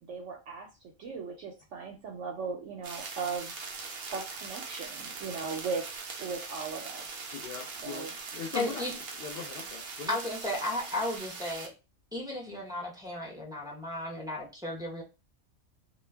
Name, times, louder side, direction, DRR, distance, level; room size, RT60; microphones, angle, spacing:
voice 1, 0.0-0.7 1.0-3.5 4.1-5.8 6.2-7.1 7.8-8.2, right 5 dB, 65° right, 1 dB, 0.8 m, -37 dB
sound 1, 2.8-11.7, right 4 dB, 80° right, 0.4 m, -41 dB
voice 2, 7.3-8.1 8.3-8.8 9.2-10.1, left 6 dB, 70° left, 1 dB, 0.5 m, -39 dB
voice 3, 8.5-8.9 10.1-11.7 12.1-15.0, left 1 dB, 5° right, -4 dB, 0.4 m, -34 dB
2.3 x 2.2 x 3.2 m, 0.28 s
omnidirectional pair, 1.5 m